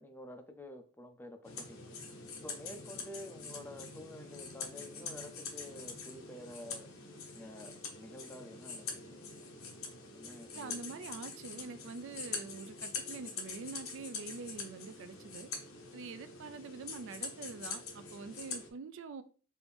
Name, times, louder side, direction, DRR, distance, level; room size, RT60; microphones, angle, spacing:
voice 1, 0.0-2.0 2.4-6.9 7.3-9.2 10.1-11.0 15.9-16.1, left 1 dB, 10° left, 0.4 m, -50 dB
sound 1, 1.4-18.7, left 4 dB, 75° left, 1.0 m, -44 dB
voice 2, 10.5-15.5 15.9-19.2, right 4 dB, 60° right, 0.4 m, -45 dB
4.7 x 2.6 x 3.4 m
head